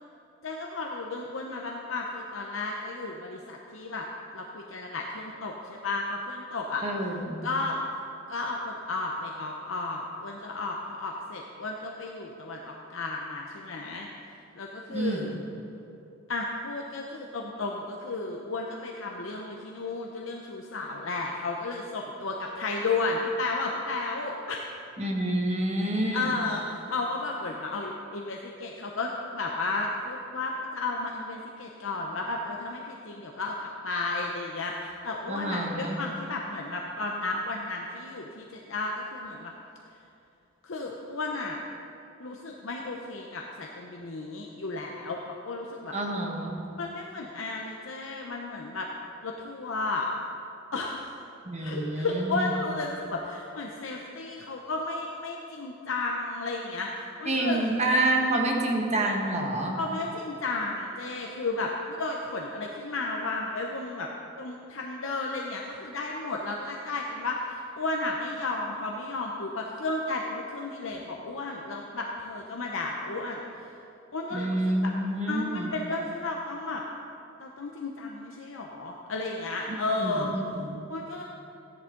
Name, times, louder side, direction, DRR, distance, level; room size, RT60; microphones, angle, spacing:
voice 1, 0.4-4.1 4.3-6.8 7.4-7.8 8.3-14.1 14.6-15.4 16.3-24.6 25.8-39.5 40.6-41.6 42.2-45.9 46.7-48.9 49.2-50.1 50.7-51.2 51.6-57.6 59.8-64.1 64.4-73.4 74.1-74.9 75.3-76.8 77.4-80.3 80.9-81.2, left 3 dB, 65° left, 0 dB, 0.8 m, -33 dB
voice 2, 6.8-7.5 14.9-15.4 25.0-26.4 35.3-36.0 45.9-46.6 51.4-52.5 57.3-59.8 74.3-75.7 80.0-80.8, right 1 dB, 30° right, 0 dB, 1.3 m, -28 dB
14.5 x 10.5 x 3.9 m, 2.7 s
head